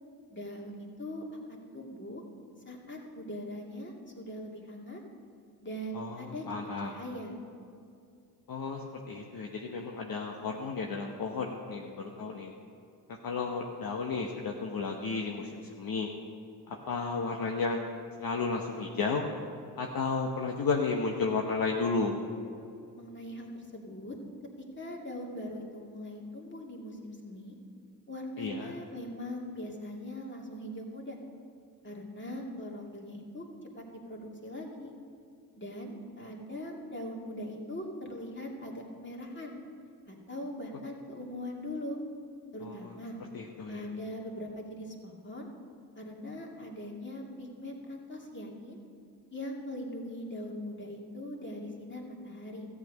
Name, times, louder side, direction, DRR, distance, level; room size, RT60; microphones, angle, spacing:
voice 1, 0.3-1.2 1.5-2.2 2.6-5.0 5.6-6.5 6.8-7.3 23.0-24.2 24.8-27.6 28.1-31.2 31.8-33.5 33.8-34.9 35.6-39.6 40.1-42.0 42.5-43.2 43.7-45.5 46.0-48.8 49.3-52.7, left 1 dB, 25° left, -1 dB, 2.6 m, -41 dB
voice 2, 5.9-6.9 8.5-12.5 13.2-16.1 16.7-17.8 18.2-19.2 19.8-22.2 28.4-28.7 42.6-42.9 43.3-43.8, left 4 dB, 50° left, 0 dB, 1.1 m, -33 dB
13.5 x 8.5 x 5.3 m, 2.4 s
hypercardioid pair, 45°, 44 cm